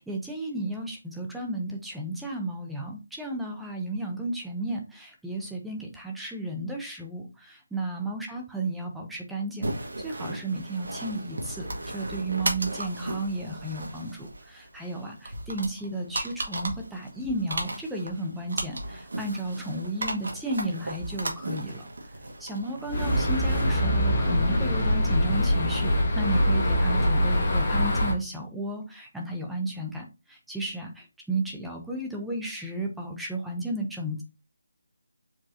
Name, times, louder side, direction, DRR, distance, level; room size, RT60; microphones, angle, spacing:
voice 1, 0.0-21.9 22.4-34.2, right 1 dB, ahead, 0 dB, 0.6 m, -33 dB
sound 1, 9.6-25.4, right 1 dB, 65° right, 1.5 m, -36 dB
sound 2, 22.9-28.1, equal, 20° left, 1.4 m, -23 dB
4.8 x 3.6 x 2.8 m, 0.28 s
figure-of-eight pair, 175°, 0 cm